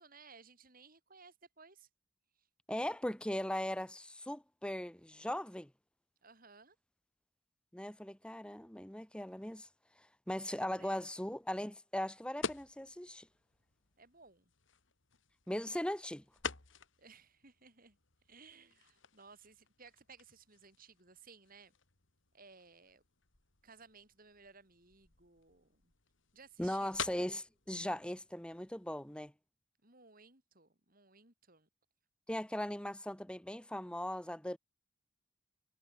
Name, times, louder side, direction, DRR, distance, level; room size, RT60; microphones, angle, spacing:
voice 1, 0.0-1.9 2.4-2.5 6.2-6.8 10.5-11.0 14.0-14.5 17.0-18.0 18.3-21.7 22.3-23.0 23.6-25.9 26.3-27.1 29.8-31.7, right 4 dB, 40° right, 4.6 m, -59 dB
voice 2, 2.7-5.7 7.7-9.7 10.0-13.3 15.5-16.2 26.6-29.3 32.3-34.6, left 1 dB, 5° left, 0.9 m, -39 dB
sound 1, 12.4-29.3, left 5 dB, 60° left, 2.6 m, -49 dB
head